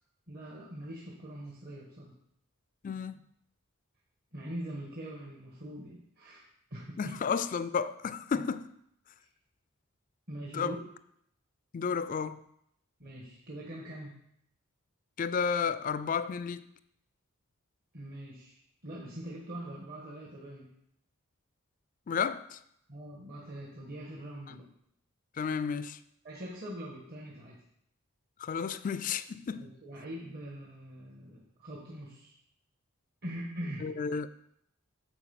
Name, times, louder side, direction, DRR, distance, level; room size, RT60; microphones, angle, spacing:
voice 1, 0.3-2.2 4.3-6.4 6.7-7.1 8.4-8.5 9.2-9.3 10.3-10.8 13.0-14.2 17.9-20.7 22.9-24.6 26.2-27.6 29.5-32.3 33.2-33.9, right 1 dB, 50° right, 1.4 m, -43 dB
voice 2, 2.8-3.2 7.0-8.7 10.5-10.7 11.7-12.4 15.2-16.7 22.1-22.6 25.4-26.0 28.4-29.7 33.8-34.3, left 6 dB, 40° left, 0.3 m, -32 dB
8.7 x 4.7 x 6.9 m
head